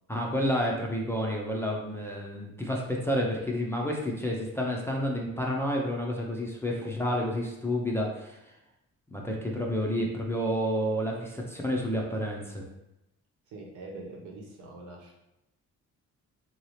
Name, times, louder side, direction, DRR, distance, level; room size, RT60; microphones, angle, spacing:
voice 1, 0.1-8.4 9.1-12.6, equal, 10° left, -2 dB, 0.5 m, -30 dB
voice 2, 13.5-15.1, right 2 dB, 70° right, -1 dB, 1.0 m, -44 dB
3.9 x 2.8 x 3.1 m, 0.89 s
cardioid pair, 110°, 31 cm